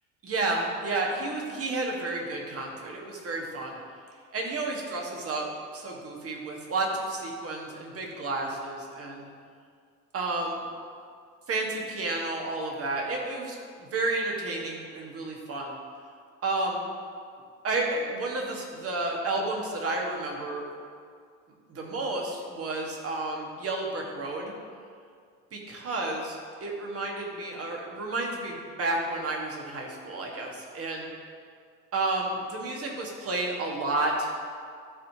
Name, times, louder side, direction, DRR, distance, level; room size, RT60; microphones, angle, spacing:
voice 1, 0.2-3.8 4.3-5.5 5.7-9.3 10.1-10.6 11.5-15.8 16.4-16.8 17.6-20.7 21.7-24.5 25.5-31.1 31.9-34.3, right 2 dB, 30° right, 0 dB, 1.5 m, -31 dB
12.5 x 4.3 x 2.8 m, 2.1 s
figure-of-eight pair, 65°, 43 cm